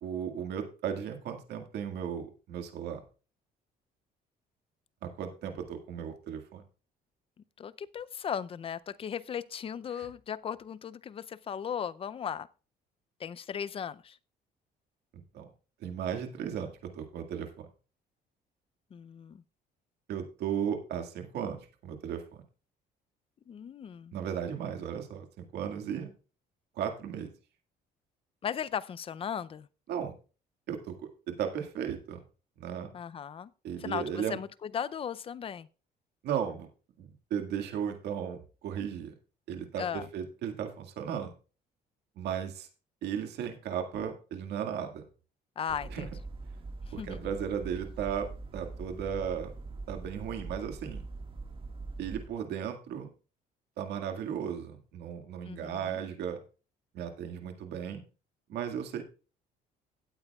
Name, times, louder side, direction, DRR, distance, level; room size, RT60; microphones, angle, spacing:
voice 1, 0.0-3.0 5.0-6.6 10.0-10.1 15.1-15.5 15.8-17.7 20.1-22.4 24.1-26.1 26.8-27.3 29.9-30.1 30.7-31.0 31.3-32.2 32.6-32.9 33.6-34.4 36.2-36.7 37.0-39.1 39.5-41.3 42.2-42.7 43.0-45.0 45.9-46.1 46.9-49.5 49.9-51.0 52.0-53.1 53.8-56.4 56.9-58.0 58.5-59.0, right 8 dB, 75° right, 2.0 m, -35 dB
voice 2, 7.6-12.5 13.2-14.2 18.9-19.4 23.5-24.2 28.4-29.7 32.9-33.5 33.8-35.7 39.8-40.1 45.6-46.1 47.0-47.3 55.4-56.0, left 8 dB, 35° left, 0.5 m, -37 dB
sound 1, 45.7-52.3, right 3 dB, 30° right, 1.8 m, -42 dB
16.5 x 8.9 x 2.4 m
cardioid pair, 110°, 17 cm